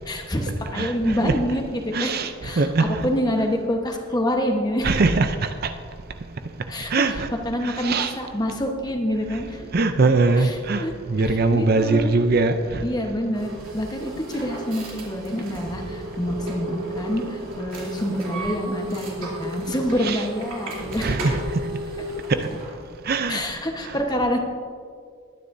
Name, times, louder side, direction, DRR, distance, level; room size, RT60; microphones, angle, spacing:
voice 1, 0.1-4.9 6.7-9.6 10.4-12.1 12.8-21.2 23.3-24.4, equal, 20° left, 2 dB, 1.2 m, -27 dB
voice 2, 0.8-1.3 1.9-3.0 4.8-5.7 6.9-7.3 7.6-8.1 9.7-12.8 20.0-20.2 21.0-21.4 22.4-22.5 23.1-23.4, right 3 dB, 45° right, 8 dB, 0.5 m, -22 dB
sound 1, 13.3-22.7, right 1 dB, 70° right, 3.1 m, -34 dB
20.5 x 9.9 x 2.7 m, 2.1 s
head